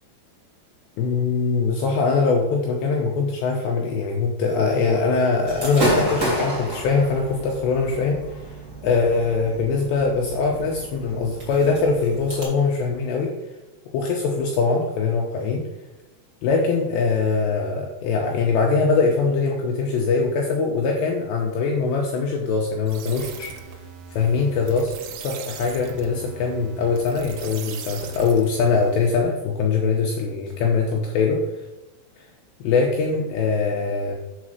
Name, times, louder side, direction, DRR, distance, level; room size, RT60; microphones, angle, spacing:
voice 1, 1.0-8.4 8.8-13.3 13.9-15.6 16.4-23.5 24.1-24.9 25.2-31.4 32.6-34.1, left 4 dB, 85° left, 0 dB, 2.5 m, -22 dB
Gunshot gunfire / Fireworks, 5.5-12.4, equal, 30° right, 1.6 m, -30 dB
sound 1, 22.9-29.2, right 7 dB, 80° right, 3.2 m, -39 dB
7.3 x 4.2 x 6.3 m, 1.0 s
omnidirectional pair, 5.7 m